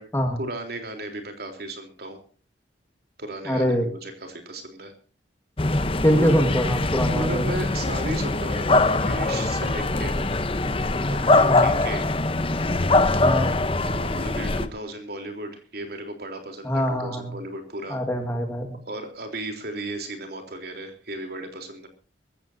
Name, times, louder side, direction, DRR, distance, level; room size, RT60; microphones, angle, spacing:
voice 1, 0.4-2.2 3.2-4.9 6.2-6.3 7.1-10.2 11.1-12.1 13.8-18.0 18.9-21.9, right 1 dB, 55° right, 5 dB, 3.6 m, -35 dB
voice 2, 3.5-3.9 6.0-7.4 11.4-11.7 13.2-13.5 16.6-17.3 17.9-18.8, equal, 15° left, 3 dB, 1.8 m, -23 dB
sound 1, 5.6-14.7, left 2 dB, 30° left, 0.9 m, -22 dB
22.0 x 15.5 x 2.8 m, 0.39 s
head